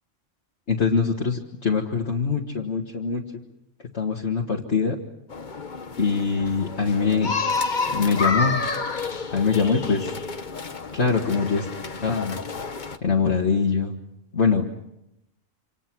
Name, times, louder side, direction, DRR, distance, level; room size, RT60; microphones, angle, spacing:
voice 1, 0.7-3.4 3.9-5.0 6.0-7.3 7.9-8.6 9.3-10.1 10.9-11.7 12.0-12.4 13.0-14.0 14.3-14.6, left 5 dB, 55° left, -1 dB, 2.1 m, -23 dB
sound 1, 5.3-13.0, left 4 dB, 40° left, 1.2 m, -29 dB
27.5 x 27.0 x 6.1 m, 0.85 s
omnidirectional pair, 1.4 m